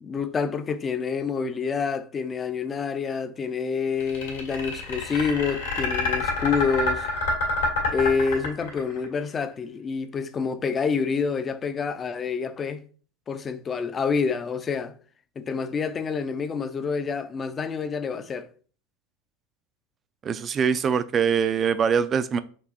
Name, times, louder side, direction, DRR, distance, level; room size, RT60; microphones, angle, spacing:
voice 1, 0.0-7.1 7.9-12.8 13.3-14.9 15.4-18.5, left 5 dB, 25° left, 0.5 m, -27 dB
sound 1, 4.0-9.1, left 3 dB, 75° left, 1.8 m, -27 dB
voice 2, 20.2-22.4, right 7 dB, 30° right, 0.4 m, -23 dB
5.9 x 2.6 x 2.9 m
hypercardioid pair, 95°, 0 cm